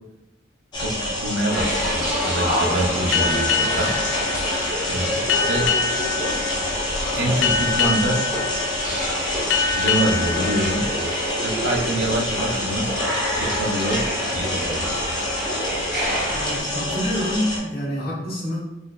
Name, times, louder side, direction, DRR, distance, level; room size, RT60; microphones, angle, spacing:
sound 1, 0.7-17.6, left 1 dB, 25° left, 0.7 m, -27 dB
voice 1, 0.7-4.0 4.9-5.7 7.1-8.2 9.7-10.9 11.4-12.9 13.3-14.9, right 1 dB, 65° right, 1 dB, 0.6 m, -25 dB
sound 2, 1.5-16.6, equal, 5° right, 0.9 m, -28 dB
sound 3, 3.1-12.3, left 5 dB, 75° left, 0.4 m, -26 dB
voice 2, 16.3-18.6, equal, 55° left, -6 dB, 1.2 m, -27 dB
4.0 x 2.6 x 2.3 m, 0.94 s
head